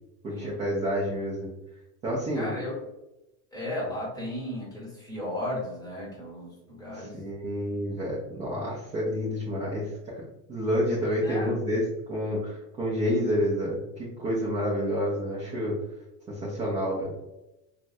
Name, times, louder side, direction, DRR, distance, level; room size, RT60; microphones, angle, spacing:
voice 1, 0.2-1.5 2.0-2.5 7.0-10.2 10.5-11.8 12.1-15.7 16.3-17.1, equal, 20° right, -6 dB, 0.3 m, -29 dB
voice 2, 2.3-2.8 3.5-7.2 11.0-11.6, left 1 dB, 10° left, -5 dB, 0.9 m, -35 dB
3.4 x 2.1 x 2.5 m, 0.94 s
supercardioid pair, 150°, 44 cm